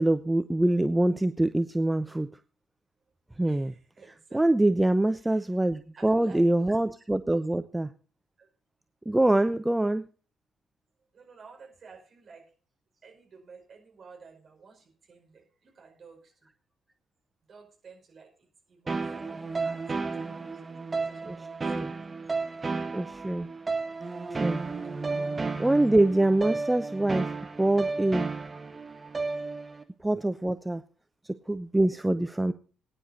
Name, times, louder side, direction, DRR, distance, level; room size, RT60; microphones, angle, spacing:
voice 1, 0.0-2.3 3.4-3.7 4.3-7.9 9.1-10.0 21.2-21.4 21.7-21.9 22.9-23.5 24.3-24.6 25.6-27.3 27.6-28.3 30.0-30.8 31.5-32.5, right 1 dB, 10° right, 10 dB, 0.7 m, -24 dB
voice 2, 3.4-4.4 5.2-5.5 6.0-6.7 8.4-8.5 11.1-12.5 13.0-16.3 17.5-20.3 20.6-21.6, right 5 dB, 45° right, 2 dB, 5.0 m, -53 dB
sound 1, 18.9-29.8, right 4 dB, 30° right, 1.7 m, -33 dB
21.0 x 10.0 x 2.7 m, 0.37 s
figure-of-eight pair, 40°, 0 cm